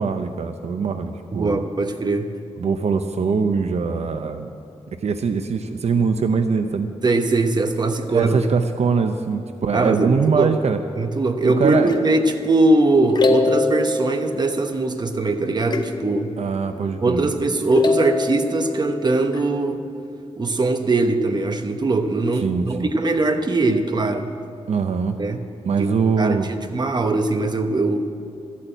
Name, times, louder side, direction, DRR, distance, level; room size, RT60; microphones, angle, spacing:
voice 1, 0.0-1.6 2.6-4.5 5.0-6.9 8.1-10.8 11.4-11.9 16.4-17.3 22.4-22.9 24.7-25.2 25.6-26.5, right 5 dB, 70° right, 8 dB, 0.7 m, -22 dB
voice 2, 1.3-2.3 7.0-8.6 9.7-10.6 11.0-16.3 17.0-19.8 20.4-24.3 25.2-25.4 25.8-28.3, right 2 dB, 40° right, 7 dB, 0.9 m, -21 dB
sound 1, 11.9-15.2 15.7-17.4 17.7-20.1, left 3 dB, 40° left, 0.9 m, -25 dB
13.5 x 8.5 x 9.1 m, 2.5 s
wide cardioid pair, 120°, 11 cm